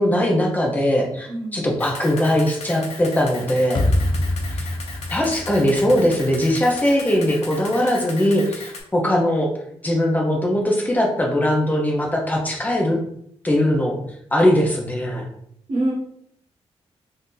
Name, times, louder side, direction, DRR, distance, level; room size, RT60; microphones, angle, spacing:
voice 1, 0.0-3.8 4.5-4.7 5.1-9.5 9.8-13.0 13.4-14.0 14.3-15.2, left 1 dB, 15° left, 0 dB, 0.8 m, -20 dB
voice 2, 1.3-1.7 15.7-15.9, right 1 dB, 60° right, -4 dB, 1.0 m, -25 dB
Camera, 1.8-8.8, left 3 dB, 75° left, 0.8 m, -37 dB
sound 1, 3.7-6.8, left 1 dB, 45° left, 0.5 m, -25 dB
2.8 x 2.7 x 3.7 m, 0.72 s
wide cardioid pair, 110°, 11 cm